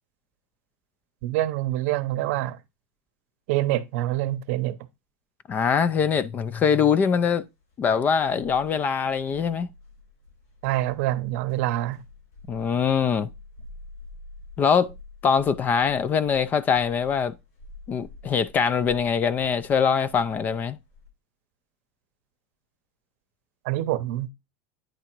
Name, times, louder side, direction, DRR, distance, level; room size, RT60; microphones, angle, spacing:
voice 1, 1.2-2.6 3.5-4.8 10.6-12.0 23.6-24.3, right 15 dB, 60° right, 0.7 m, -26 dB
voice 2, 5.5-7.4 7.8-9.7 12.5-13.3 14.6-14.9 15.2-17.3 17.9-20.8, left 6 dB, 20° left, 0.3 m, -23 dB
sound 1, 7.6-21.1, left 3 dB, 85° left, 4.8 m, -47 dB
9.2 x 3.7 x 4.4 m
supercardioid pair, 160°, 8 cm